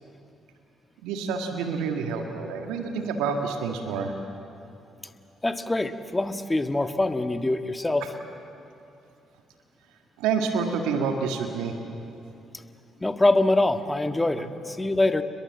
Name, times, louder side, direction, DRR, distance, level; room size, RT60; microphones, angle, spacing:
voice 1, 1.0-4.1 10.2-11.7, right 5 dB, 80° right, 4 dB, 1.8 m, -28 dB
voice 2, 5.4-8.1 13.0-15.2, left 2 dB, 20° left, 8 dB, 1.7 m, -24 dB
29.5 x 22.0 x 7.7 m, 2.7 s
hypercardioid pair, 50°, 0 cm